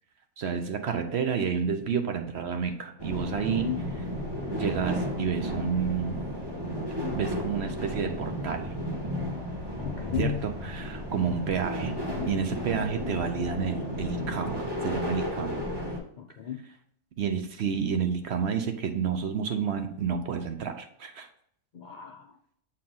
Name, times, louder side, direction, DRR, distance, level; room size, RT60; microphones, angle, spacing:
voice 1, 0.4-3.7 4.6-6.2 7.1-8.7 10.2-11.9 12.3-15.7 17.2-21.3, right 6 dB, 60° right, 7 dB, 0.9 m, -30 dB
sound 1, 3.0-16.0, equal, 20° right, 1.2 m, -33 dB
voice 2, 3.3-3.8 9.8-10.4 16.2-16.6 21.7-22.3, left 9 dB, 60° left, 4 dB, 0.5 m, -34 dB
7.3 x 4.5 x 3.8 m, 0.67 s
omnidirectional pair, 1.4 m